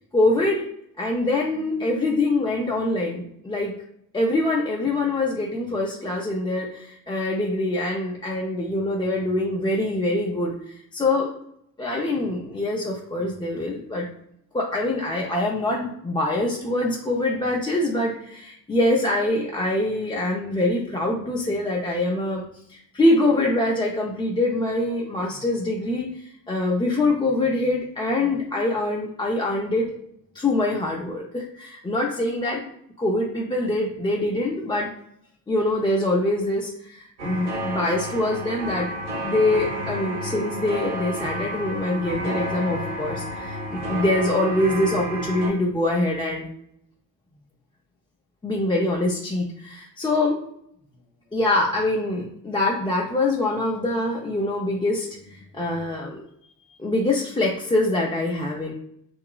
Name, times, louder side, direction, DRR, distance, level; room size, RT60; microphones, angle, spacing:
voice 1, 0.1-0.6 1.0-3.7 4.1-11.3 11.8-14.1 14.5-29.9 30.3-32.6 33.0-34.9 35.5-38.9 39.2-46.5 48.4-50.4 51.3-56.2 56.8-58.7, left 2 dB, 10° left, -3 dB, 0.5 m, -24 dB
sound 1, 37.2-45.5, right 1 dB, 65° right, 1.2 m, -31 dB
2.7 x 2.4 x 2.3 m, 0.74 s
hypercardioid pair, 50°, 49 cm